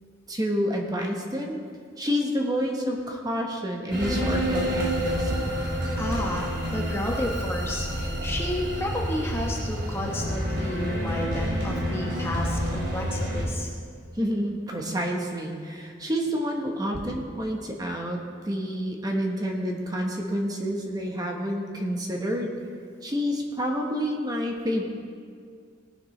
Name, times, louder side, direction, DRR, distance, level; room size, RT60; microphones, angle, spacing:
voice 1, 0.3-1.6 2.0-5.5 14.1-18.2 18.4-22.6 23.0-24.8, equal, 20° right, 1 dB, 1.2 m, -28 dB
sound 1, 3.9-13.4, equal, 60° right, 2.6 m, -28 dB
voice 2, 6.0-13.7, left 1 dB, 10° left, -1 dB, 1.0 m, -31 dB
18.5 x 10.5 x 3.3 m, 2.2 s
head